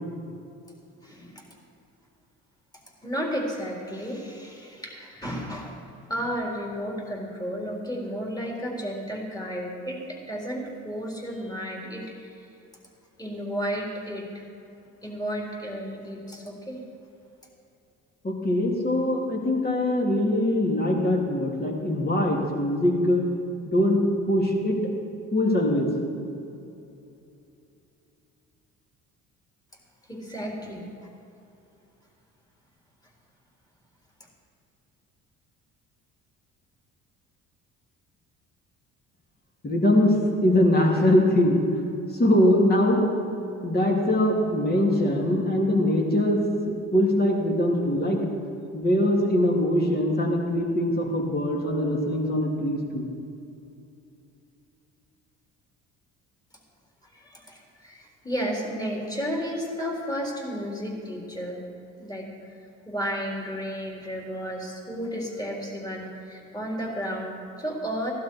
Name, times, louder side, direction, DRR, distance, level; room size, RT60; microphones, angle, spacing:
voice 1, 1.0-1.5 3.0-12.5 13.2-14.4 15.0-16.8 30.1-31.1 57.1-61.6 62.0-62.6 62.9-68.1, equal, 10° left, -1 dB, 3.9 m, -33 dB
voice 2, 18.2-23.3 23.6-24.8 25.3-25.9 39.6-40.2 40.4-41.6 42.1-43.0 43.6-48.2 48.7-53.0, left 1 dB, 30° left, -1 dB, 3.3 m, -22 dB
16.5 x 12.0 x 4.7 m, 2.7 s
supercardioid pair, 80°, 32 cm